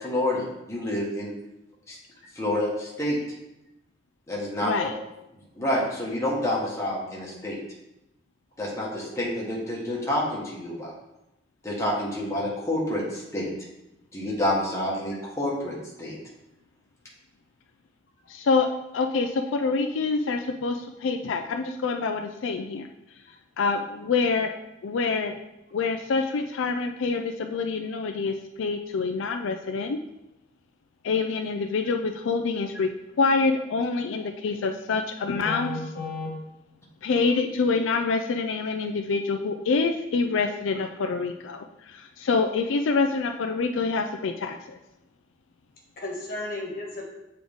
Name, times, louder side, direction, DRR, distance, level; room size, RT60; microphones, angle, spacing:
voice 1, 0.0-1.3 1.9-2.0 2.3-3.2 4.3-4.9 5.6-7.6 8.6-10.9 11.6-13.5 14.1-16.1, left 1 dB, 15° left, -5 dB, 1.4 m, -28 dB
voice 2, 4.6-4.9 18.3-18.7 18.9-22.9 23.6-24.5 24.8-25.3 25.7-30.0 31.0-32.9 33.2-35.7 37.0-44.8, left 4 dB, 85° left, 5 dB, 0.4 m, -26 dB
voice 3, 35.4-36.3 46.0-47.0, left 2 dB, 50° left, -2 dB, 1.5 m, -33 dB
7.6 x 3.8 x 3.5 m, 0.90 s
head